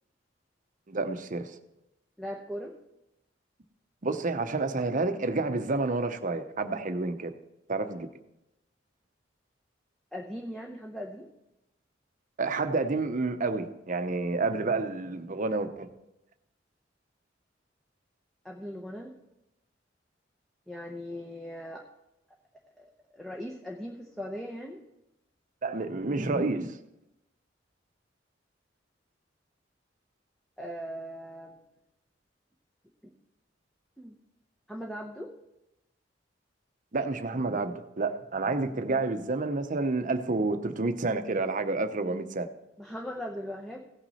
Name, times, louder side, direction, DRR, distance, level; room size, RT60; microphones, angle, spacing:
voice 1, 0.9-1.5 4.0-7.3 7.7-8.1 12.4-15.9 25.6-26.8 36.9-42.5, right 3 dB, 45° right, 8 dB, 0.8 m, -29 dB
voice 2, 2.2-2.8 10.1-11.3 18.4-19.1 20.7-21.8 22.8-22.9 23.1-24.8 30.6-31.6 33.0-33.1 34.0-34.1 34.7-35.3 42.8-43.8, equal, ahead, 0 dB, 0.8 m, -39 dB
17.0 x 6.0 x 4.2 m, 0.90 s
head